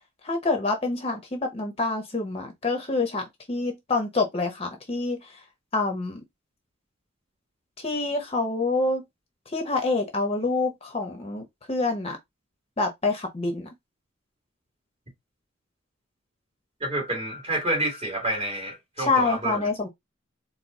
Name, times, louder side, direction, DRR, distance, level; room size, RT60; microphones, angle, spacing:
voice 1, 0.2-5.4 5.7-6.2 7.8-9.0 9.5-12.2 12.8-13.7 19.0-19.9, left 3 dB, 30° left, 0.8 m, -27 dB
voice 2, 16.8-19.6, right 1 dB, 30° right, 2.3 m, -28 dB
4.5 x 2.0 x 3.9 m
head